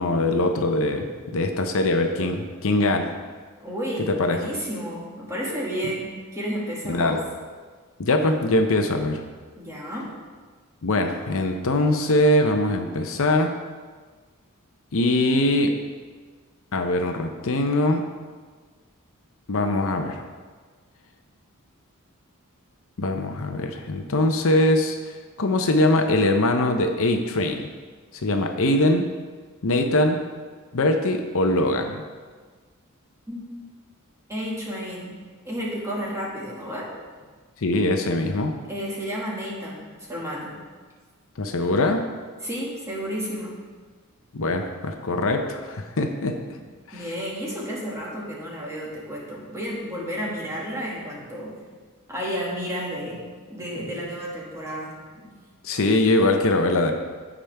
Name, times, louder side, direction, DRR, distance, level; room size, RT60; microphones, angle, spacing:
voice 1, 0.0-3.1 4.1-4.4 6.9-7.2 8.0-9.2 10.8-13.5 14.9-15.8 16.7-18.0 19.5-20.2 23.0-25.0 25.4-27.7 28.2-29.1 29.6-30.2 30.7-32.0 37.6-38.5 41.4-42.0 44.3-46.4 46.9-47.1 55.6-56.9, left 1 dB, 65° left, 5 dB, 0.7 m, -22 dB
voice 2, 3.6-7.2 9.6-10.1 33.3-33.7 34.3-35.2 35.4-36.9 38.7-40.6 42.4-43.6 46.9-51.5 52.1-53.2 53.5-55.3, equal, 15° right, -5 dB, 1.9 m, -32 dB
14.5 x 5.0 x 3.4 m, 1.5 s
head